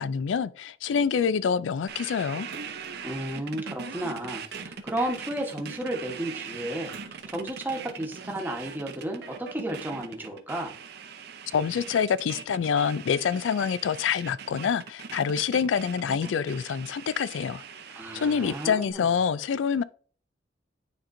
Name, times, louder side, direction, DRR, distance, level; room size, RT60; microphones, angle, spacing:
voice 1, 0.0-2.5 11.5-17.6 18.1-19.8, left 6 dB, 80° left, 0.3 m, -26 dB
sound 1, 1.9-18.9, right 6 dB, 55° right, 0.7 m, -41 dB
Splash splatter, 2.5-3.1 4.5-5.7 6.8-7.6 8.2-8.3, right 2 dB, 75° right, 1.0 m, -47 dB
voice 2, 3.0-10.8 17.9-19.1, right 1 dB, 10° right, 1.1 m, -33 dB
9.2 x 4.3 x 2.6 m
head